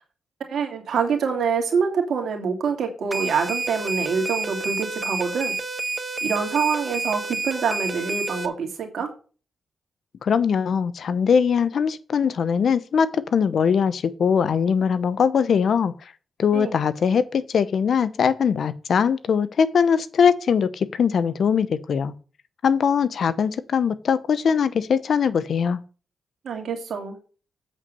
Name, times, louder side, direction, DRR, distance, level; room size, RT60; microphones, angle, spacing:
voice 1, 0.5-5.6 6.2-9.1 16.5-16.7 26.4-27.2, right 6 dB, 75° right, 2.6 m, -25 dB
sound 1, 3.1-8.5, right 3 dB, 35° right, 1.4 m, -29 dB
voice 2, 10.2-15.9 16.4-22.1 22.6-25.8, left 6 dB, 70° left, 0.8 m, -21 dB
8.3 x 5.4 x 6.8 m
cardioid pair, 60°, 0 cm